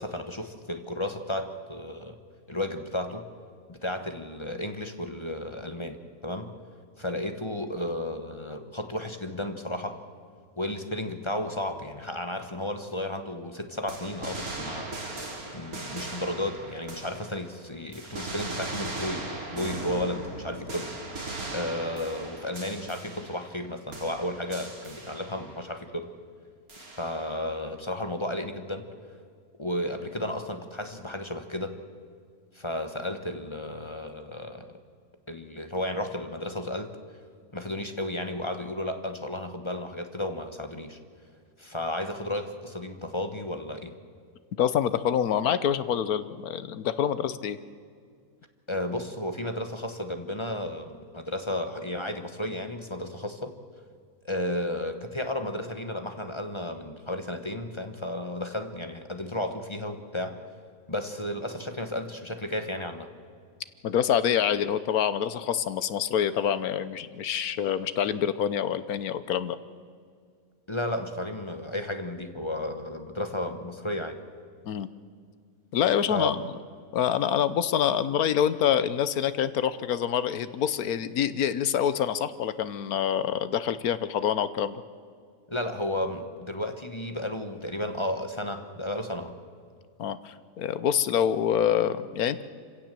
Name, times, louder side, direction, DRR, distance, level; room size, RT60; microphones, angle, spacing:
voice 1, 0.0-2.2 2.5-3.3 3.7-6.5 7.0-10.0 10.6-14.9 15.5-26.1 26.8-28.9 29.6-31.8 32.5-34.7 35.3-37.0 37.5-41.0 41.6-43.9 48.7-53.5 54.2-60.4 60.9-63.1 70.7-74.2 76.1-76.3 85.5-89.3, left 1 dB, 20° left, 7 dB, 1.2 m, -33 dB
sound 1, 13.9-17.6 17.9-23.6 23.9-25.6 26.7-27.4, right 2 dB, 75° right, 3.4 m, -38 dB
voice 2, 44.6-47.6 63.8-69.6 74.6-74.9 75.7-76.4 76.9-84.8 90.0-92.4, left 9 dB, 80° left, 14 dB, 1.4 m, -26 dB
26.0 x 16.5 x 7.6 m, 2.2 s
omnidirectional pair, 1.5 m